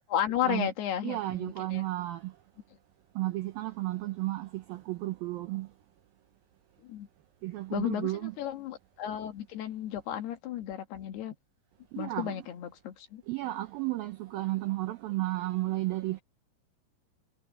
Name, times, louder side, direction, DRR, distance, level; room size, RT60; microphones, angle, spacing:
voice 1, 0.1-1.8 6.8-7.1 7.7-11.4 12.0-13.2, left 10 dB, 65° left, 3.6 m, -33 dB
voice 2, 1.0-2.3 3.2-5.7 7.4-8.3 11.9-12.4 13.3-16.2, right 17 dB, 90° right, 2.1 m, -33 dB
omnidirectional pair, 5.3 m